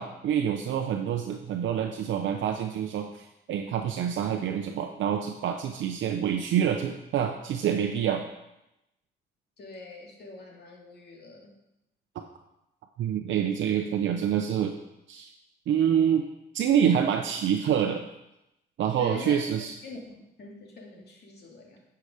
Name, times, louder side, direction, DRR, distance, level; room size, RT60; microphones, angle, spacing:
voice 1, 0.0-8.2 12.1-12.2 13.0-14.7 15.1-15.3 15.7-16.3 16.5-18.1 18.8-19.7, right 9 dB, 70° right, 3 dB, 0.8 m, -27 dB
voice 2, 9.6-11.5 19.0-19.4 19.8-21.8, left 3 dB, 55° left, 0 dB, 2.4 m, -44 dB
9.7 x 5.8 x 5.0 m, 0.88 s
cardioid pair, 90°, 20 cm